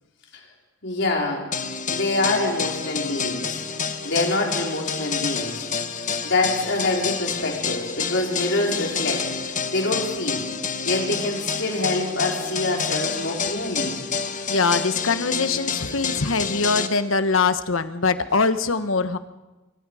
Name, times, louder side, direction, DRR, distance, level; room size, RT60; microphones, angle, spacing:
voice 1, 0.8-1.5 1.9-3.5 4.0-5.6 6.2-9.2 9.7-10.5 10.8-14.0, left 2 dB, 60° left, 0 dB, 4.6 m, -25 dB
sound 1, 1.5-16.9, left 6 dB, 40° left, 1.3 m, -28 dB
voice 2, 14.5-19.2, left 4 dB, 80° left, 11 dB, 1.1 m, -22 dB
25.0 x 24.5 x 5.0 m, 1.1 s
head